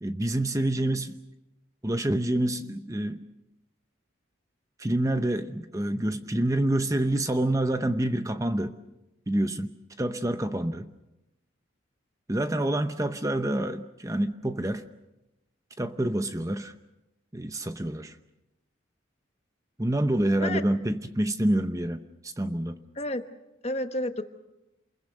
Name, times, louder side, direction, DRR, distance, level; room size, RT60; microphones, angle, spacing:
voice 1, 0.0-1.2 1.8-3.2 4.8-8.7 9.3-10.9 12.3-14.9 15.8-16.7 17.3-18.1 19.8-22.8, right 1 dB, 15° right, 9 dB, 0.8 m, -27 dB
voice 2, 23.6-24.2, left 1 dB, 30° left, 8 dB, 1.2 m, -30 dB
28.5 x 21.5 x 6.7 m, 0.95 s
head